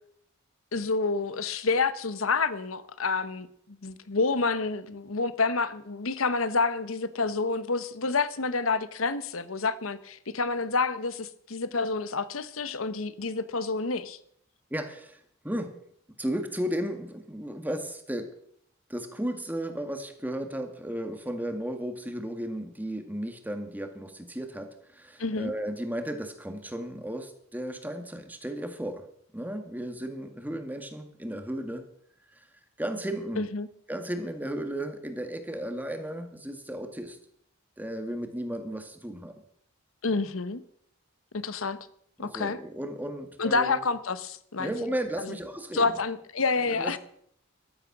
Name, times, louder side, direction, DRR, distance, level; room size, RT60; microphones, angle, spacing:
voice 1, 0.7-3.5 3.8-14.2 25.2-25.5 33.4-33.7 40.0-40.6 41.3-41.8 42.2-42.6 43.4-44.7 45.2-45.4 45.7-47.0, left 4 dB, 90° left, 14 dB, 1.1 m, -28 dB
voice 2, 14.7-15.7 16.2-18.3 18.9-29.1 29.3-31.9 32.4-32.5 32.8-33.5 33.9-37.2 37.8-39.4 42.2-43.8 44.6-46.0 46.7-47.0, right 1 dB, 10° right, 6 dB, 1.8 m, -34 dB
14.0 x 12.5 x 6.1 m, 0.68 s
head